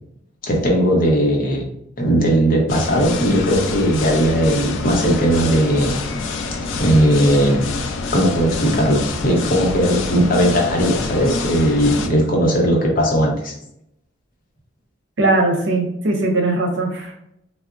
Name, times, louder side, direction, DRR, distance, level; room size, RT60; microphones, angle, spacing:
voice 1, 0.4-1.7 2.0-6.0 6.8-7.7 8.1-13.5, equal, 50° left, 0 dB, 0.7 m, -17 dB
sound 1, 2.7-12.1, left 3 dB, 90° left, 0.4 m, -26 dB
voice 2, 15.2-17.2, right 2 dB, 70° right, 1 dB, 0.7 m, -19 dB
3.7 x 2.0 x 2.4 m, 0.78 s
head